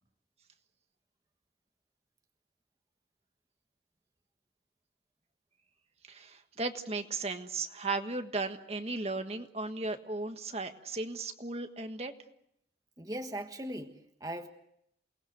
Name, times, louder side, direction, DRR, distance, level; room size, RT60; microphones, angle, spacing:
voice 1, 6.1-12.1, right 3 dB, 35° right, 6 dB, 1.5 m, -36 dB
voice 2, 13.0-14.5, right 1 dB, 20° right, 6 dB, 1.4 m, -39 dB
28.5 x 20.0 x 8.0 m, 0.74 s
head